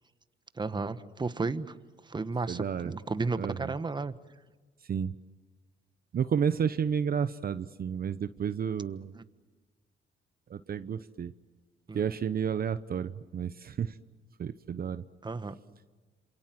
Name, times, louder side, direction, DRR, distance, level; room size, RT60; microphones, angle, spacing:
voice 1, 0.6-1.7 2.1-4.1 9.1-9.2 11.9-12.0 15.2-15.6, right 3 dB, 20° right, 12 dB, 1.3 m, -33 dB
voice 2, 2.5-2.9 3.4-3.7 4.8-5.1 6.1-9.1 10.5-11.3 11.9-14.0 14.4-15.0, right 7 dB, 50° right, 12 dB, 0.9 m, -31 dB
27.5 x 27.5 x 7.7 m, 1.4 s
cardioid pair, 90°, 20 cm